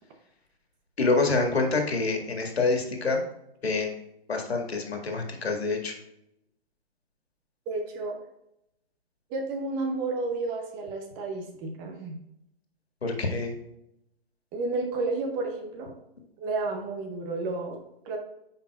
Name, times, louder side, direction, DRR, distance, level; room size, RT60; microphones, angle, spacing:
voice 1, 1.0-3.2 3.6-3.9 4.3-5.9 13.0-13.5, left 3 dB, 85° left, 3 dB, 1.9 m, -26 dB
voice 2, 7.7-8.2 9.3-12.2 14.5-15.9 16.4-18.2, right 3 dB, 15° right, 3 dB, 0.6 m, -31 dB
9.0 x 5.5 x 2.4 m, 0.81 s
hypercardioid pair, 150°, 30 cm